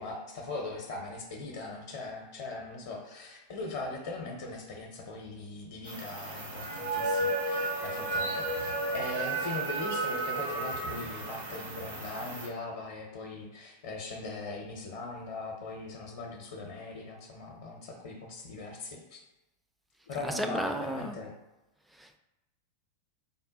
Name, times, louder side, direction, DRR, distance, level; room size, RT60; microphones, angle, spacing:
voice 1, 0.0-19.2 20.1-21.3, left 3 dB, 55° left, -1 dB, 0.6 m, -40 dB
sound 1, 5.9-12.5, right 2 dB, 65° right, 0.9 m, -33 dB
voice 2, 20.1-21.2 21.9-22.2, right 1 dB, 5° right, 6 dB, 0.3 m, -34 dB
3.6 x 2.2 x 3.9 m, 1.0 s
figure-of-eight pair, 90°, 0 cm